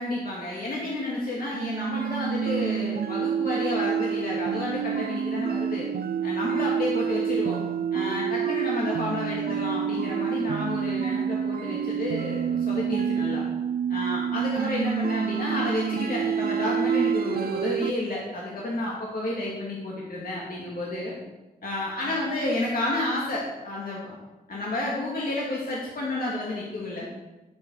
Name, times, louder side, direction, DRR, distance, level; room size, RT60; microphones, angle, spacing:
voice 1, 0.0-5.9 6.2-7.6 7.9-13.4 13.9-21.1 21.6-24.1 24.5-27.1, left 2 dB, 60° left, -4 dB, 2.7 m, -30 dB
sound 1, 1.5-17.9, right 8 dB, 65° right, 0.4 m, -28 dB
13.5 x 8.1 x 5.0 m, 1.1 s
wide cardioid pair, 95°, 17 cm